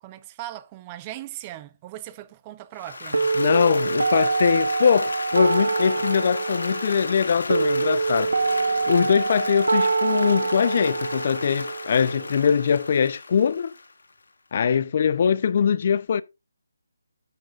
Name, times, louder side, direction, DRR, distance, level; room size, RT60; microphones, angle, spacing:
voice 1, 0.0-3.3, right 14 dB, 15° right, 0.6 m, -39 dB
Applause, 2.8-14.1, left 3 dB, 65° left, 3.7 m, -34 dB
sound 1, 3.1-13.1, right 4 dB, 80° right, 0.9 m, -25 dB
voice 2, 3.4-8.3 8.9-13.7 14.5-16.2, left 7 dB, 35° left, 0.6 m, -22 dB
sound 2, 7.2-10.4 10.7-10.8, left 1 dB, 10° left, 3.8 m, -52 dB
13.0 x 8.8 x 2.4 m
hypercardioid pair, 170°, 0 cm